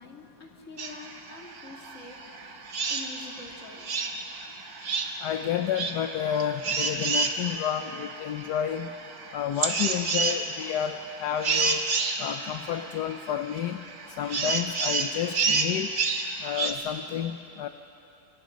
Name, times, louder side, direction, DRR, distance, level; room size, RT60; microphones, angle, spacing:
voice 1, 0.0-2.2 2.9-3.9, left 3 dB, 50° left, 0 dB, 3.0 m, -45 dB
sound 1, 0.8-16.7, right 4 dB, 65° right, 2.0 m, -30 dB
voice 2, 5.2-8.9 9.3-11.8 12.2-13.8 14.2-15.9 16.4-17.7, left 10 dB, 85° left, 7 dB, 1.3 m, -30 dB
29.0 x 25.5 x 5.2 m, 2.9 s
omnidirectional pair, 1.7 m